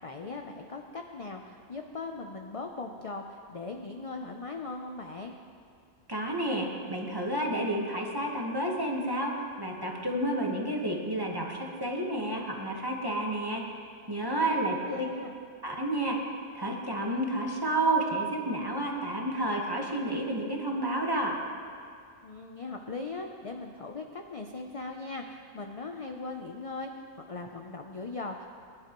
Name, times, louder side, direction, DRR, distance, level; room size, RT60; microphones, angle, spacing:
voice 1, 0.0-5.4 14.7-15.4 22.2-26.9 27.1-28.5, left 3 dB, 45° left, 3 dB, 0.4 m, -39 dB
voice 2, 6.1-9.3 9.6-13.6 14.1-15.1 15.6-16.2 16.5-21.4, right 1 dB, 20° right, -1 dB, 1.3 m, -30 dB
21.0 x 11.0 x 3.0 m, 2.3 s
omnidirectional pair, 1.4 m